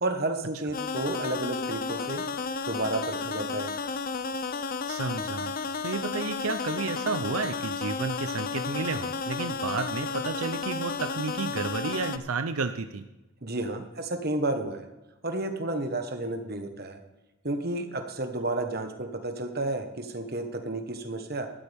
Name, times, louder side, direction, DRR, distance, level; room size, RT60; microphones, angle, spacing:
voice 1, 0.0-2.2 2.7-3.7 13.4-14.9 15.2-17.0 17.4-21.5, right 2 dB, 45° right, 6 dB, 1.4 m, -31 dB
sound 1, 0.7-12.2, left 5 dB, 40° left, 0.6 m, -32 dB
voice 2, 4.9-5.5 5.8-13.0, right 4 dB, 85° right, 9 dB, 0.7 m, -31 dB
13.0 x 12.5 x 3.6 m, 1.0 s
head